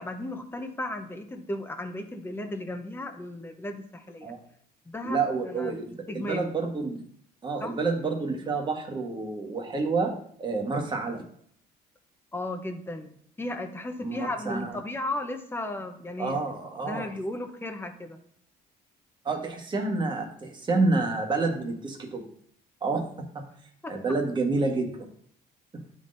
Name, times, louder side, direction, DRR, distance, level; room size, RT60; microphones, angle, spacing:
voice 1, 0.0-4.3 4.9-5.8 6.1-6.5 7.6-7.7 12.3-16.4 16.8-18.2 23.8-23.9, left 1 dB, 15° left, 6 dB, 0.8 m, -35 dB
voice 2, 5.0-7.0 7.4-11.2 14.0-14.7 16.2-17.1 19.2-22.3 22.8-23.5 23.9-25.1 25.7-25.8, right 3 dB, 25° right, 2 dB, 1.2 m, -29 dB
11.0 x 3.8 x 2.6 m, 0.63 s
cardioid pair, 110°, 17 cm